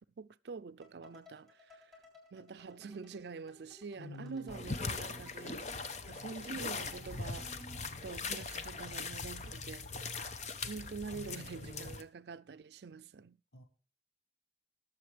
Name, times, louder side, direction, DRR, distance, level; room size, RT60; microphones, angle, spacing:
voice 1, 0.2-2.0 2.3-7.5 8.0-9.9 10.7-13.4, right 4 dB, 65° right, 0.5 m, -46 dB
sound 1, 0.8-7.9, right 1 dB, ahead, 3.5 m, -58 dB
voice 2, 4.0-4.7 11.1-11.9 13.5-13.6, left 2 dB, 70° left, 1.7 m, -49 dB
sound 2, 4.5-12.0, left 4 dB, 40° left, 0.8 m, -41 dB
19.5 x 7.1 x 3.3 m
head